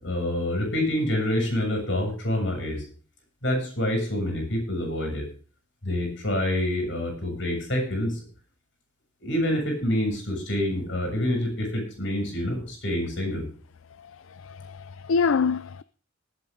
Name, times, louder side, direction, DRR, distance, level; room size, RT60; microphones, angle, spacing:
voice 1, 0.0-2.8 3.4-5.2 5.8-8.2 9.2-13.5, left 1 dB, 60° left, 7.7 m, -27 dB
voice 2, 14.4-15.8, left 5 dB, 80° left, 0.5 m, -25 dB
20.0 x 8.8 x 3.8 m
head